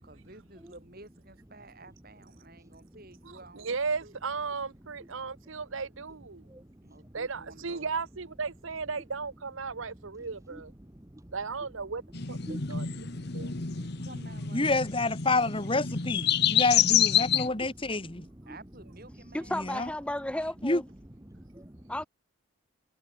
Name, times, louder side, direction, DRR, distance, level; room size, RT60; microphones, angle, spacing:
voice 1, 0.0-4.2 6.8-7.9 13.7-14.7 18.5-20.1, right 2 dB, 45° right, 5.5 m, -52 dB
voice 2, 3.5-6.4 7.1-10.7 11.3-12.0 12.3-12.9 13.3-13.5, right 4 dB, 65° right, 0.9 m, -35 dB
voice 3, 10.9-11.3 12.5-13.8 18.4-18.6 21.3-21.9, right 1 dB, 15° right, 1.0 m, -47 dB
sound 1, 12.1-17.5, left 9 dB, 50° left, 1.3 m, -28 dB
voice 4, 14.5-18.3 19.5-19.9 20.6-20.8, left 2 dB, 25° left, 1.7 m, -28 dB
voice 5, 19.3-20.8 21.9-22.0, left 1 dB, 5° left, 0.6 m, -33 dB
head